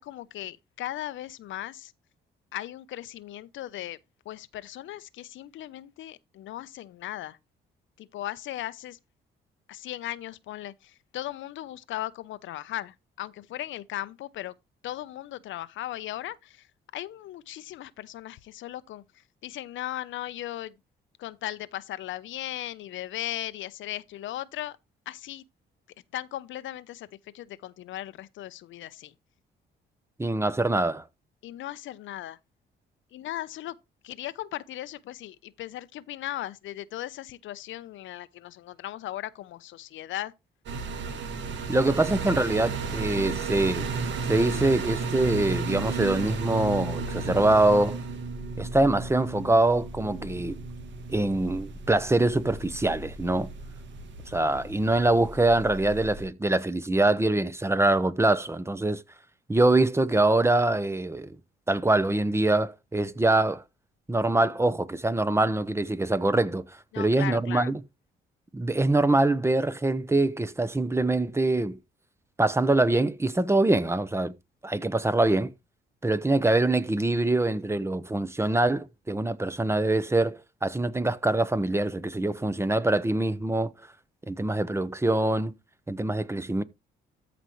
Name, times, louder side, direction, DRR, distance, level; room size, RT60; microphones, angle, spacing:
voice 1, 0.0-1.9 2.5-4.0 4.3-7.4 8.0-9.0 9.7-14.5 14.8-16.7 16.9-19.0 19.4-20.7 21.2-24.8 25.1-25.4 26.1-27.1 27.3-29.1 31.4-32.4 33.1-33.8 34.0-40.3 66.9-67.7, left 13 dB, 75° left, 0.7 m, -37 dB
voice 2, 30.2-31.0 41.7-43.9 44.3-48.0 48.6-50.6 51.1-53.5 54.3-59.0 59.5-61.4 61.7-63.6 64.1-66.6 67.0-67.8 68.5-71.8 72.4-74.3 74.6-75.5 76.0-83.7 84.3-85.5 85.9-86.6, right 2 dB, 15° right, 0.9 m, -24 dB
sound 1, 40.7-56.3, right 4 dB, 65° right, 1.9 m, -34 dB
13.5 x 5.1 x 3.1 m
cardioid pair, 90°, 20 cm